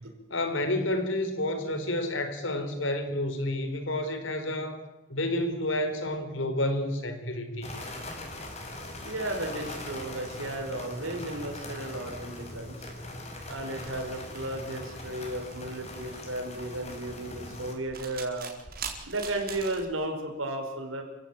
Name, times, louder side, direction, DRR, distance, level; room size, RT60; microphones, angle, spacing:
voice 1, 0.3-4.8 5.1-7.7, left 1 dB, 70° left, 8 dB, 4.1 m, -30 dB
sound 1, 7.6-17.7, left 1 dB, 35° left, 5.4 m, -41 dB
voice 2, 9.0-12.8 13.5-18.5 19.0-21.0, right 1 dB, 85° right, 3 dB, 5.6 m, -34 dB
sound 2, 13.5-19.9, right 6 dB, 50° right, 4.4 m, -43 dB
28.0 x 16.0 x 9.0 m, 1.1 s
head